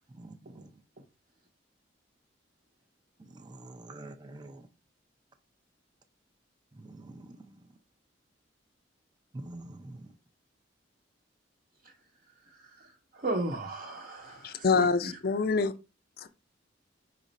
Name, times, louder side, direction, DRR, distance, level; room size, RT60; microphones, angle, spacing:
voice 1, 0.2-0.7 3.4-4.7 6.8-7.3 9.3-10.1, right 2 dB, 25° right, 0.4 m, -46 dB
voice 2, 12.5-15.2, right 2 dB, 50° right, 0.8 m, -36 dB
voice 3, 14.4-15.7 16.2-16.3, left 4 dB, 50° left, 0.4 m, -26 dB
5.1 x 2.5 x 4.0 m
head